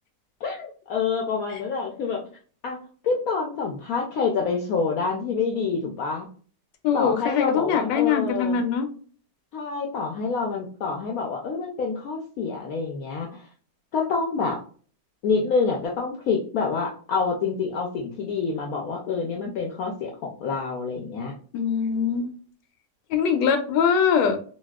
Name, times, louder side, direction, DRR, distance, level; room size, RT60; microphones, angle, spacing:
voice 1, 0.4-2.2 2.6-2.8 3.0-6.3 6.9-8.6 9.5-13.5 13.9-14.6 15.2-21.3, left 5 dB, 70° left, 0 dB, 0.9 m, -27 dB
voice 2, 6.8-8.9 21.5-22.3 23.1-24.4, left 7 dB, 85° left, 6 dB, 1.3 m, -22 dB
4.1 x 2.3 x 2.2 m, 0.43 s
omnidirectional pair, 1.9 m